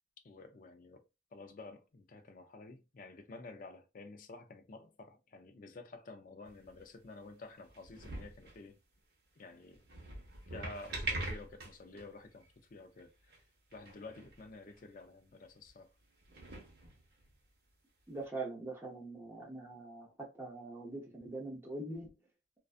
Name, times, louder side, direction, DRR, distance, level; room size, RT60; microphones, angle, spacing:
voice 1, 0.2-1.0 1.3-8.8 9.4-9.8 10.5-13.1 13.7-15.9, left 3 dB, 45° left, 0.4 m, -51 dB
sound 1, 6.4-7.0 7.7-8.6 9.7-12.1 12.4-12.5 13.0-13.1 13.3-13.4 13.7-14.4 14.7-14.8 15.7-15.8 16.2-17.3 18.2-18.3, right 2 dB, 60° right, 0.8 m, -43 dB
voice 2, 18.1-22.1, right 2 dB, 15° right, 0.8 m, -43 dB
2.5 x 2.2 x 2.4 m
head